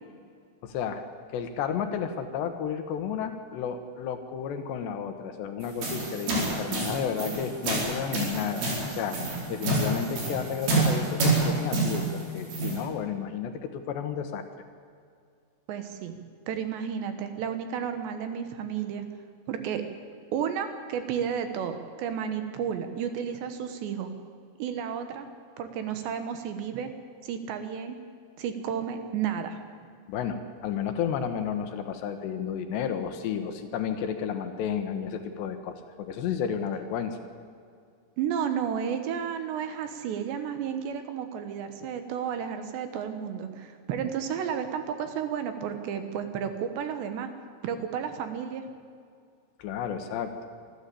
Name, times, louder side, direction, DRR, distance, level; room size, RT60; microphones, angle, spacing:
voice 1, 0.6-1.0 1.3-9.2 9.5-14.4 30.1-37.2 49.6-50.3, left 8 dB, 70° left, 7 dB, 3.1 m, -32 dB
sound 1, 5.6-12.8, right 3 dB, 90° right, 7.4 m, -28 dB
voice 2, 15.7-16.2 16.5-19.0 19.5-19.8 20.3-24.1 24.6-25.3 25.6-26.9 27.2-28.0 28.4-29.6 38.2-47.3 47.6-48.6, right 8 dB, 70° right, 8 dB, 3.3 m, -32 dB
25.0 x 13.5 x 8.4 m, 2.3 s
omnidirectional pair, 5.5 m